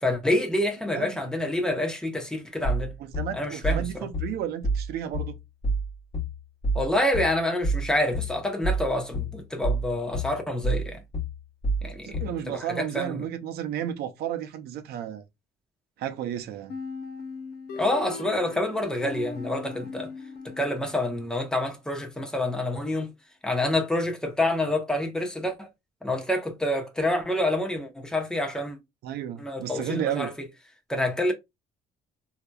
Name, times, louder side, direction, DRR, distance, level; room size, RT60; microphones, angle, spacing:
voice 1, 0.0-2.9 3.3-4.1 6.7-11.0 11.8-13.2 17.7-20.1 20.6-23.1 23.4-25.7 26.0-28.8 29.4-30.3 30.9-31.3, left 1 dB, 5° left, 0.8 m, -27 dB
sound 1, 2.6-12.4, right 2 dB, 35° left, 1.1 m, -28 dB
voice 2, 3.0-5.4 12.0-15.2 16.0-16.7 29.0-30.3, right 10 dB, 70° right, 0.6 m, -32 dB
sound 2, 16.7-21.4, left 4 dB, 70° left, 0.7 m, -39 dB
3.3 x 2.8 x 2.2 m
cardioid pair, 110°, 17 cm